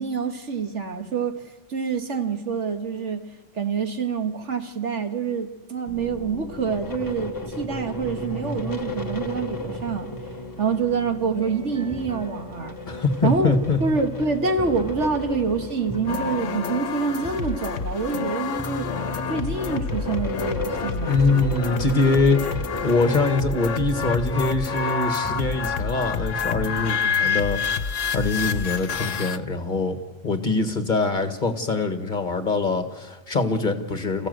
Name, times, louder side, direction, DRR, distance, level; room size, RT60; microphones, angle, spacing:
voice 1, 0.0-1.4 1.7-10.1 10.6-12.8 13.2-18.9 19.3-21.3, right 5 dB, 70° right, 6 dB, 1.9 m, -26 dB
sound 1, 5.9-23.2, left 1 dB, 15° left, 1.4 m, -35 dB
sound 2, 11.4-27.3, right 1 dB, 10° right, 0.4 m, -38 dB
voice 2, 12.9-13.8 21.1-22.4 22.8-30.0 30.2-34.3, left 3 dB, 40° left, 7 dB, 1.8 m, -23 dB
sound 3, 16.1-29.4, left 6 dB, 80° left, 1.3 m, -28 dB
28.5 x 15.0 x 7.9 m, 1.2 s
omnidirectional pair, 1.3 m